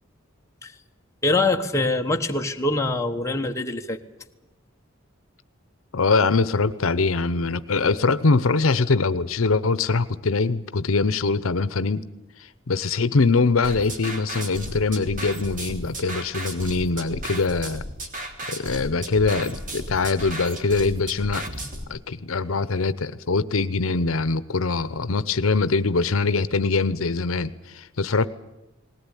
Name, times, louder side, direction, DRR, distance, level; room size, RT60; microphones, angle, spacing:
voice 1, 1.2-4.0, left 2 dB, 15° left, 3 dB, 1.2 m, -24 dB
voice 2, 5.9-12.0 12.7-17.8 18.5-21.5 21.9-28.3, left 4 dB, 80° left, 15 dB, 0.8 m, -23 dB
sound 1, 13.6-21.8, right 1 dB, 40° right, 2.7 m, -35 dB
20.0 x 18.0 x 9.9 m, 0.96 s
head